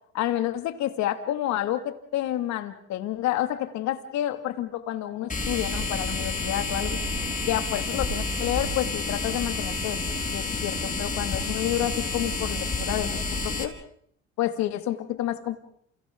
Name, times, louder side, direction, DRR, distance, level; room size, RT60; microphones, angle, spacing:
voice 1, 0.1-7.0 7.5-10.0 10.3-13.8 14.4-15.6, left 12 dB, 70° left, 8 dB, 2.4 m, -29 dB
sound 1, 5.3-13.6, left 3 dB, 30° left, 4.7 m, -29 dB
29.5 x 29.0 x 3.9 m, 0.64 s
supercardioid pair, 80°, 29 cm